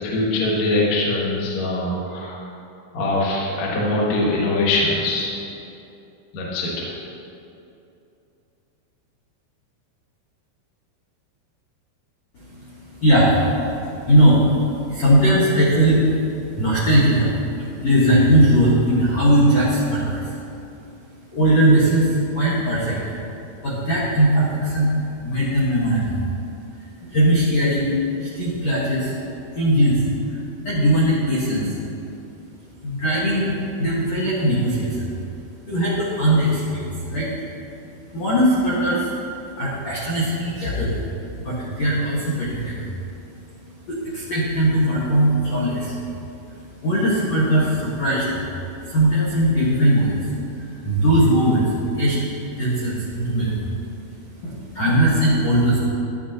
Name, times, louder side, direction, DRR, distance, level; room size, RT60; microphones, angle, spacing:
voice 1, 0.0-2.4 2.9-5.3 6.3-6.9, left 2 dB, 65° left, -4 dB, 1.8 m, -22 dB
voice 2, 12.9-13.5 14.0-14.4 14.9-16.1 16.5-17.3 17.8-20.3 21.3-23.0 23.6-25.0 25.2-26.2 27.1-27.9 28.2-29.1 29.5-30.4 30.6-31.8 32.8-35.1 35.6-37.3 38.1-39.1 39.6-41.0 41.4-42.9 43.9-46.0 46.5-48.4 48.8-50.2 50.5-52.3 52.5-53.6 54.4-55.8, right 1 dB, 85° left, -8 dB, 1.4 m, -19 dB
12.5 x 11.0 x 2.9 m, 2.7 s
omnidirectional pair, 5.6 m